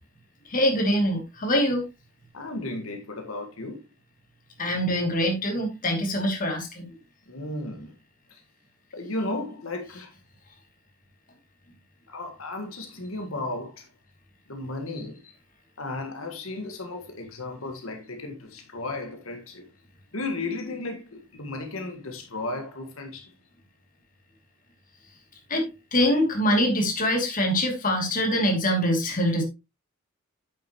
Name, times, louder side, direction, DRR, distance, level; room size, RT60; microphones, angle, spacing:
voice 1, 0.5-1.8 4.6-6.8 25.5-29.4, equal, 40° left, 2.7 m, -24 dB
voice 2, 2.3-3.8 7.3-7.9 8.3-8.4 8.9-10.1 12.1-13.9 14.5-15.2 15.8-19.6 20.1-23.3, left 2 dB, 90° left, 1.8 m, -34 dB
8.9 x 7.7 x 3.0 m
head